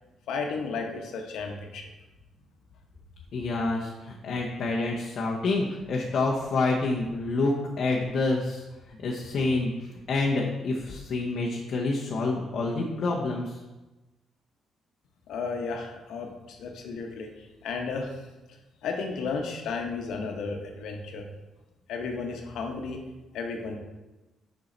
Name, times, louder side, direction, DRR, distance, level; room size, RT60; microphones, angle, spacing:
voice 1, 0.3-1.9 15.3-18.2 18.8-21.3 21.9-23.0 23.3-23.8, left 4 dB, 75° left, 3 dB, 1.1 m, -33 dB
voice 2, 3.3-8.6 9.0-13.6, left 3 dB, 45° left, -3 dB, 0.9 m, -28 dB
7.4 x 5.5 x 4.0 m, 1.1 s
cardioid pair, 175°, 0 cm